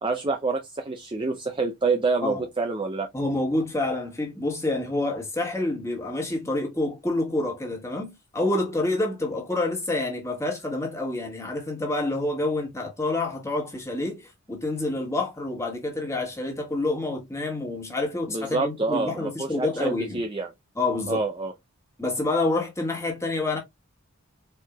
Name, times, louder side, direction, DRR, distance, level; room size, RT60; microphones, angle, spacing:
voice 1, 0.0-3.1 18.3-20.5 21.1-21.5, right 3 dB, 20° right, 0.5 m, -27 dB
voice 2, 3.1-20.2 20.8-21.2 22.0-23.6, left 2 dB, 15° left, 1.5 m, -28 dB
4.6 x 4.3 x 2.2 m
head